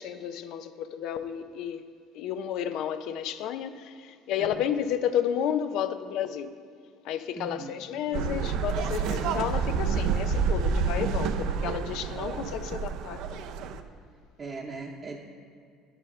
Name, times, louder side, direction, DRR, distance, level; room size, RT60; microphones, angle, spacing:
voice 1, 0.0-1.8 2.1-6.5 7.0-13.4, left 9 dB, 70° left, 10 dB, 0.5 m, -32 dB
voice 2, 7.4-7.8 14.4-15.2, right 3 dB, 30° right, -1 dB, 0.8 m, -39 dB
sound 1, 8.1-13.8, right 5 dB, 70° right, 0.5 m, -28 dB
9.9 x 5.0 x 5.5 m, 2.3 s
supercardioid pair, 100°, 0 cm